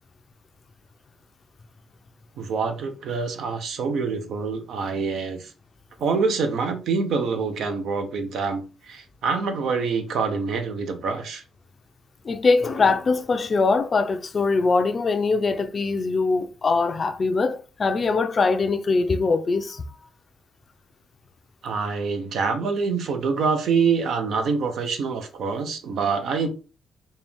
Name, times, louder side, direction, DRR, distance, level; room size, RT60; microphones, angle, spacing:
voice 1, 2.4-5.5 6.0-11.4 21.6-26.5, right 5 dB, 70° right, 0.8 m, -26 dB
voice 2, 12.2-19.8, left 4 dB, 40° left, 0.5 m, -22 dB
4.4 x 2.4 x 3.5 m
cardioid pair, 90°, 0 cm